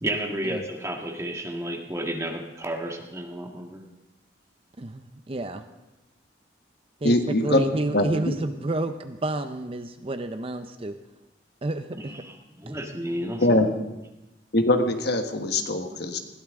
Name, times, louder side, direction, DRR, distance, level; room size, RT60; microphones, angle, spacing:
voice 1, 0.0-3.8 12.0-12.3 12.6-13.7, right 1 dB, 15° right, 2 dB, 1.7 m, -32 dB
voice 2, 4.8-5.6 7.0-11.0 11.6-12.1 12.7-12.8, right 2 dB, 30° right, 9 dB, 0.6 m, -30 dB
voice 3, 7.0-7.6 7.9-8.3 13.4-13.7 14.5-16.2, left 1 dB, 60° left, 6 dB, 1.4 m, -22 dB
20.5 x 15.0 x 3.7 m, 0.98 s
head